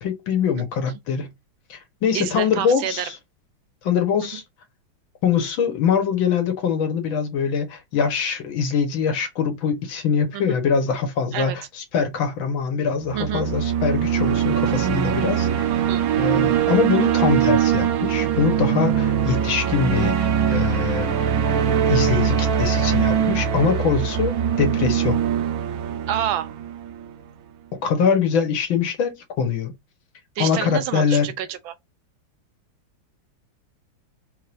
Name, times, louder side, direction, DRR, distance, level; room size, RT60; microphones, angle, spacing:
voice 1, 0.0-1.3 1.7-3.2 3.8-4.4 5.2-15.7 16.2-21.1 21.9-25.2 27.8-29.7 30.4-31.3, left 6 dB, 85° left, 2.0 m, -23 dB
voice 2, 2.1-3.1 10.3-10.6 11.3-11.6 13.1-13.5 15.7-16.1 26.1-26.5 30.4-31.8, right 11 dB, 85° right, 1.5 m, -28 dB
sound 1, 13.0-27.2, right 9 dB, 65° right, 1.0 m, -22 dB
4.8 x 3.8 x 2.6 m
omnidirectional pair, 2.1 m